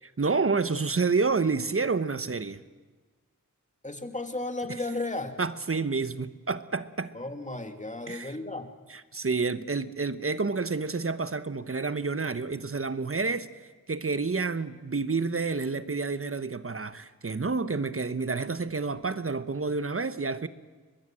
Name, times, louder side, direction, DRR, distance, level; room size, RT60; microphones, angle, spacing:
voice 1, 0.2-2.6 5.4-7.1 8.1-8.3 8.9-13.5 13.9-20.5, right 4 dB, 40° right, 13 dB, 1.1 m, -29 dB
voice 2, 3.8-5.4 7.1-8.8, left 2 dB, 20° left, 6 dB, 2.6 m, -34 dB
23.5 x 20.5 x 7.7 m, 1.4 s
cardioid pair, 50°, 33 cm